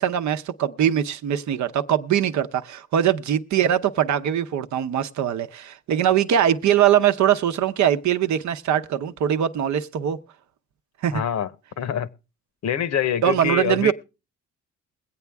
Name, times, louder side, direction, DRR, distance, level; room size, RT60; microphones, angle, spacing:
voice 1, 0.0-10.2 11.0-11.2 13.2-13.9, right 10 dB, 70° right, 0.8 m, -22 dB
voice 2, 11.1-11.5 11.8-12.1 12.6-13.9, left 9 dB, 60° left, 0.9 m, -25 dB
22.0 x 8.4 x 3.4 m
cardioid pair, 90°, 30 cm